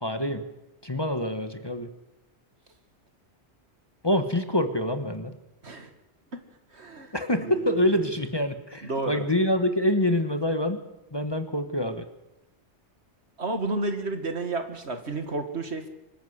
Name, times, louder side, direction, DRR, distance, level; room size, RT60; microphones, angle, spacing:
voice 1, 0.0-0.4 0.8-1.9 4.0-5.3 7.1-10.8 11.1-12.1, left 1 dB, 20° left, 8 dB, 1.3 m, -26 dB
voice 2, 6.7-7.1 7.4-8.1 8.8-9.3 13.4-15.9, right 2 dB, 70° right, 7 dB, 2.3 m, -31 dB
25.5 x 13.5 x 8.1 m, 0.98 s
omnidirectional pair, 1.2 m